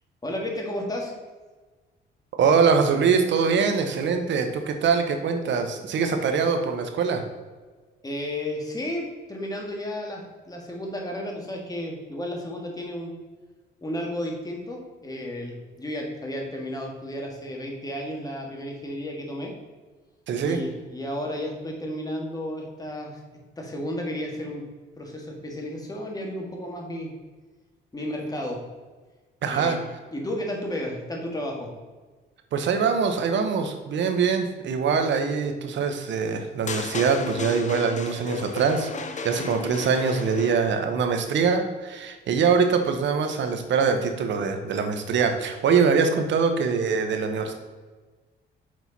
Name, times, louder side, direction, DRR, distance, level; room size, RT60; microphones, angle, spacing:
voice 1, 0.2-1.1 8.0-13.1 13.8-19.5 20.4-23.2 23.6-24.6 25.0-27.1 27.9-28.6 29.5-29.8 30.1-31.7, left 1 dB, 20° left, 0 dB, 1.7 m, -33 dB
voice 2, 2.4-7.2 20.3-20.6 29.4-29.8 32.5-38.9 39.2-47.5, right 5 dB, 70° right, 6 dB, 1.0 m, -23 dB
sound 1, 36.7-40.9, left 4 dB, 35° left, 0.8 m, -34 dB
6.4 x 4.4 x 4.1 m, 1.3 s
cardioid pair, 90°, 20 cm